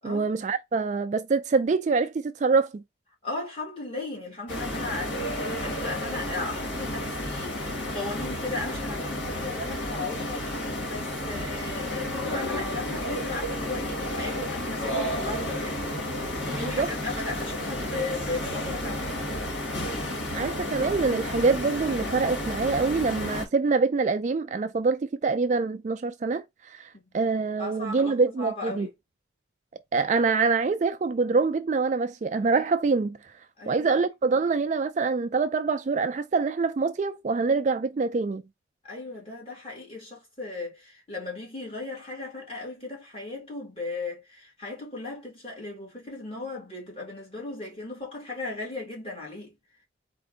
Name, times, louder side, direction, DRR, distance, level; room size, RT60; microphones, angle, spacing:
voice 1, 0.0-2.8 16.6-16.9 20.3-28.9 29.9-33.2 33.7-38.4, right 4 dB, 40° right, 0.3 m, -25 dB
voice 2, 3.2-19.1 26.9-27.1 27.6-28.9 33.6-33.9 38.8-49.5, left 2 dB, 30° left, 2.3 m, -37 dB
sound 1, 4.5-23.4, left 1 dB, 75° left, 1.7 m, -31 dB
4.3 x 2.5 x 3.9 m
head